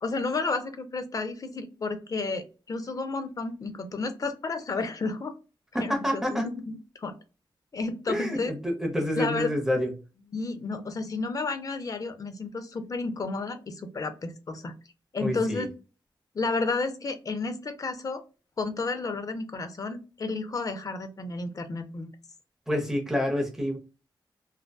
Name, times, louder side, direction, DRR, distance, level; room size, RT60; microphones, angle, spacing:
voice 1, 0.0-5.4 5.8-6.7 7.0-7.1 7.7-8.5 9.2-9.5 10.3-14.7 15.1-15.7 16.3-18.2 18.6-22.1, left 3 dB, 45° left, 9 dB, 0.4 m, -31 dB
voice 2, 5.7-6.4 8.1-9.9 15.2-15.7 22.7-23.8, equal, 5° right, 0 dB, 0.6 m, -28 dB
2.6 x 2.2 x 2.2 m, 0.33 s
wide cardioid pair, 100°, 8 cm